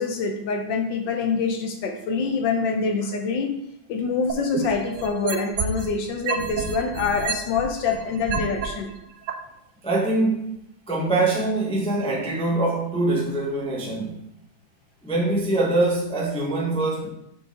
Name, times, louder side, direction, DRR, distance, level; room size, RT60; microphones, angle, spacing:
voice 1, 0.0-3.5 3.9-8.9, left 5 dB, 70° left, 4 dB, 1.2 m, -25 dB
sound 1, 4.3-5.9 6.3-8.7 9.3-9.4, right 5 dB, 70° right, 1.2 m, -28 dB
voice 2, 9.8-10.5 10.9-14.2 15.0-17.1, right 2 dB, 5° left, -3 dB, 0.5 m, -23 dB
6.3 x 4.6 x 3.7 m, 0.80 s
omnidirectional pair, 2.4 m